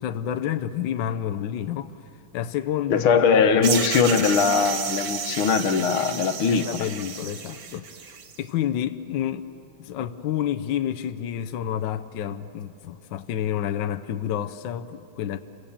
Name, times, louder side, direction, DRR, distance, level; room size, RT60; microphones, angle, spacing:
voice 1, 0.0-2.0 2.3-3.5 6.5-7.9 8.4-9.5 9.8-15.4, left 10 dB, 70° left, 1.4 m, -29 dB
voice 2, 2.9-6.7, left 6 dB, 90° left, 2.0 m, -20 dB
sound 1, 3.6-8.4, right 7 dB, 75° right, 2.0 m, -32 dB
29.0 x 24.0 x 7.2 m
omnidirectional pair, 2.2 m